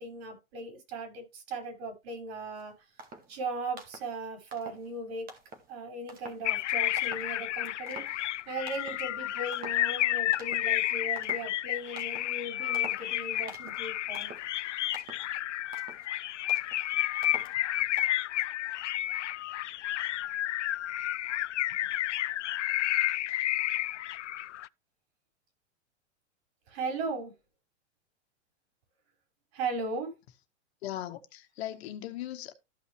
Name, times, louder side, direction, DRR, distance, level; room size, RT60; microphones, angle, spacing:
voice 1, 0.0-2.7 3.3-5.3 5.7-14.3 21.8-21.9 26.7-27.3 29.5-30.1, right 2 dB, 60° right, 5.8 m, -38 dB
sound 1, 2.6-2.7 3.0-3.4 3.7-4.1 4.5-4.9 5.3-5.7 6.1-6.5 7.0-7.4 7.7-8.4 8.7-9.1 9.5-9.9 10.3-10.8 11.2-11.6 12.0-12.4 12.7-13.1 13.5-13.9 14.1-14.5 14.9-15.3 15.7-16.1 16.5-16.8 17.2-17.6 18.0-18.2, right 2 dB, 25° right, 2.0 m, -47 dB
sound 2, 6.4-24.7, left 14 dB, 80° left, 0.5 m, -31 dB
voice 2, 30.8-32.5, left 13 dB, 60° left, 1.7 m, -38 dB
14.0 x 5.6 x 3.3 m
hypercardioid pair, 120°, 35 cm